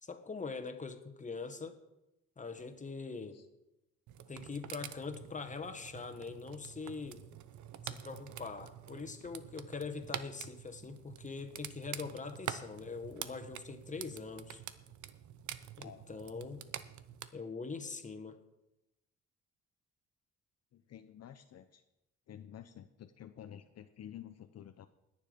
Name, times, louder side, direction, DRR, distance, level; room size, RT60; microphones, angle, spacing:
voice 1, 0.0-1.7 2.4-3.4 4.3-7.2 7.8-14.6 15.8-16.7 17.3-18.4, left 4 dB, 25° left, 8 dB, 1.6 m, -43 dB
sound 1, 4.1-17.3, right 10 dB, 75° right, 0.9 m, -47 dB
voice 2, 15.8-16.4 20.7-21.8 22.3-24.9, left 10 dB, 55° left, 8 dB, 0.8 m, -51 dB
19.5 x 7.3 x 5.2 m, 0.93 s
cardioid pair, 90°, 30 cm